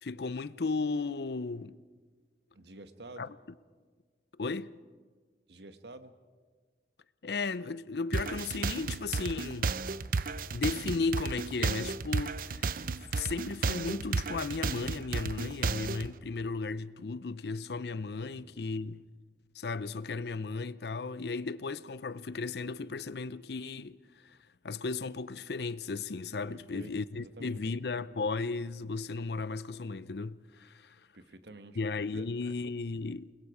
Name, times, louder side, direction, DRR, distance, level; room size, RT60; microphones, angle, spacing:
voice 1, 0.0-1.8 3.2-3.3 4.4-4.7 7.2-9.7 10.5-19.0 19.6-24.0 24.6-31.0 31.7-33.3, left 4 dB, 70° left, 0.6 m, -35 dB
voice 2, 2.5-3.3 5.5-6.1 18.3-18.8 26.5-27.6 31.1-31.8 32.1-32.5, right 2 dB, 75° right, 1.3 m, -49 dB
sound 1, 8.1-16.1, right 4 dB, 50° right, 0.5 m, -32 dB
29.0 x 21.0 x 4.9 m
head